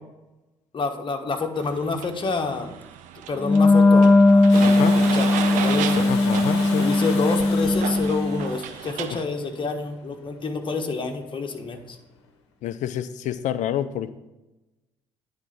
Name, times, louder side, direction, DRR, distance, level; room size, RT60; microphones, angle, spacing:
voice 1, 0.7-2.7 3.3-5.3 5.6-6.1 6.8-12.0, left 4 dB, 35° left, 3 dB, 1.4 m, -28 dB
sound 1, 1.6-9.2, right 10 dB, 65° right, 0.6 m, -33 dB
Wind instrument woodwind instrument, 3.4-8.5, left 2 dB, 15° left, 0.7 m, -18 dB
Domestic sounds home sounds, 4.5-10.3 12.2-12.3, left 5 dB, 80° left, 0.9 m, -36 dB
voice 2, 4.6-5.0 6.1-6.9 12.6-14.2, left 10 dB, 60° left, 13 dB, 0.5 m, -28 dB
9.9 x 4.1 x 6.9 m, 1.0 s
hypercardioid pair, 45°, 14 cm